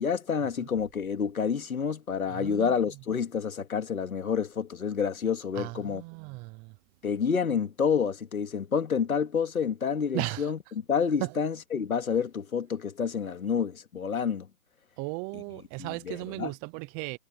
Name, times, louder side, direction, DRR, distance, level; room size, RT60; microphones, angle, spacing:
voice 1, 0.0-6.0 7.0-10.6 10.9-14.5 15.3-15.4 15.8-16.5, left 6 dB, 85° left, 2.6 m, -29 dB
voice 2, 2.3-2.7 5.5-6.7 10.1-10.5 11.2-11.3 15.0-17.2, right 25 dB, 20° right, 0.7 m, -36 dB
hypercardioid pair, 140°, 41 cm